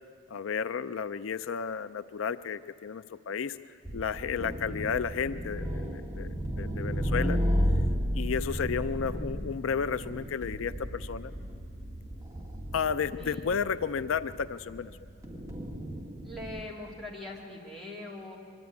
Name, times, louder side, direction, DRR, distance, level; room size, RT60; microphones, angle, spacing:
voice 1, 0.3-3.6 3.9-6.3 6.6-7.4 8.2-11.3 12.7-14.9, left 6 dB, 80° left, 14 dB, 0.4 m, -32 dB
sound 1, 3.8-16.6, equal, 15° right, 1.7 m, -33 dB
voice 2, 13.2-13.6 13.9-14.1 16.2-18.4, left 1 dB, ahead, -5 dB, 2.9 m, -42 dB
24.0 x 12.5 x 9.4 m, 2.3 s
head